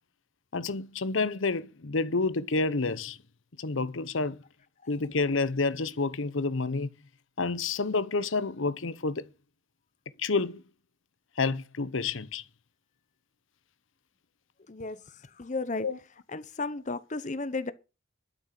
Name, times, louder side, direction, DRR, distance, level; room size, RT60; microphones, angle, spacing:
voice 1, 0.5-3.2 3.6-4.4 4.9-6.9 7.4-9.3 10.2-10.6 11.4-12.4 15.8-16.0, left 3 dB, 80° left, 0.9 m, -29 dB
voice 2, 14.7-15.0 15.4-15.9 16.3-17.7, left 3 dB, 40° left, 0.8 m, -33 dB
12.0 x 6.3 x 7.5 m
head